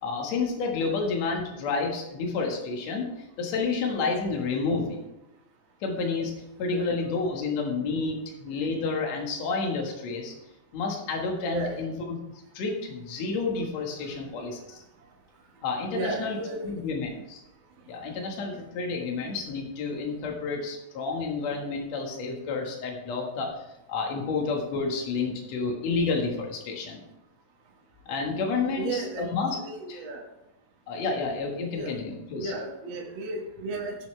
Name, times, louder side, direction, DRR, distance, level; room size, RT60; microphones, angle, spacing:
voice 1, 0.0-5.1 5.8-10.3 10.7-12.2 12.5-14.8 15.6-16.4 16.6-17.4 17.9-27.0 28.1-29.6 29.9-30.0 30.9-32.5, left 4 dB, 55° left, 1 dB, 2.5 m, -30 dB
voice 2, 11.5-11.9 15.9-17.0 28.8-29.3 29.6-30.2 31.7-32.0 32.3-33.9, right 3 dB, 55° right, 0 dB, 1.4 m, -34 dB
15.5 x 7.0 x 3.3 m, 0.91 s
omnidirectional pair, 4.1 m